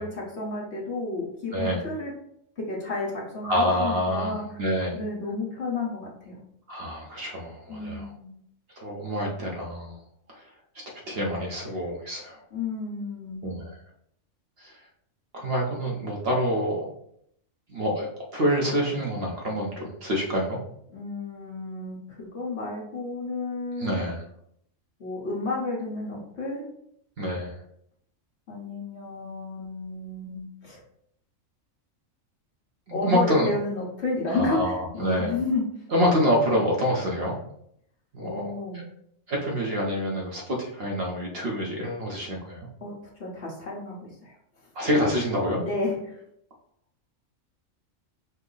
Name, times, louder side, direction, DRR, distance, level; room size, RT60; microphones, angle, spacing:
voice 1, 0.0-2.1 2.6-4.4 4.9-6.4 7.7-8.3 12.5-13.4 20.9-24.0 25.0-26.7 28.5-30.8 32.9-35.6 38.2-38.8 42.8-42.9 43.2-44.4 45.7-46.2, left 3 dB, 55° left, -3 dB, 1.4 m, -31 dB
voice 2, 1.5-1.8 3.4-5.0 6.7-8.1 8.8-10.0 10.3-10.5 11.1-12.4 13.4-13.7 14.6-14.8 15.3-16.8 17.7-20.6 23.8-24.2 27.2-27.5 32.9-33.5 34.3-35.3 35.9-37.4 38.1-38.4 39.3-42.7 44.7-45.6, equal, 50° right, -2 dB, 1.0 m, -27 dB
5.4 x 2.1 x 3.9 m, 0.72 s
omnidirectional pair, 1.4 m